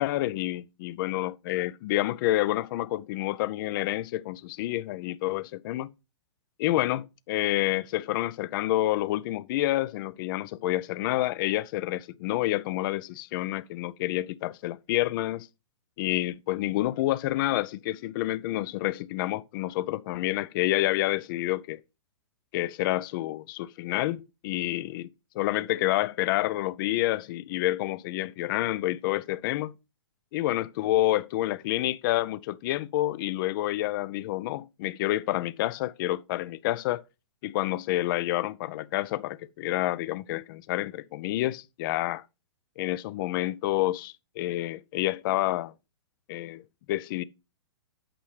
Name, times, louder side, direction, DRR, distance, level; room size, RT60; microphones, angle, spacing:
voice 1, 0.0-5.9 6.6-15.5 16.0-21.8 22.5-25.1 25.3-29.7 30.3-37.0 37.4-42.2 42.8-45.7 46.3-46.6 46.9-47.2, left 16 dB, 45° left, 0.5 m, -28 dB
8.7 x 6.3 x 3.3 m
hypercardioid pair, 125°, 15 cm